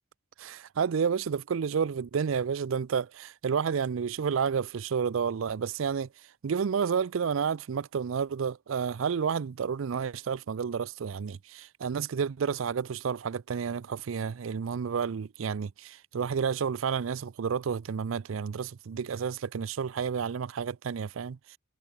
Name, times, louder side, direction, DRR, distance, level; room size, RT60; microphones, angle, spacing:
voice 1, 0.4-6.1 6.4-21.6, right 6 dB, 80° right, 0.4 m, -30 dB
head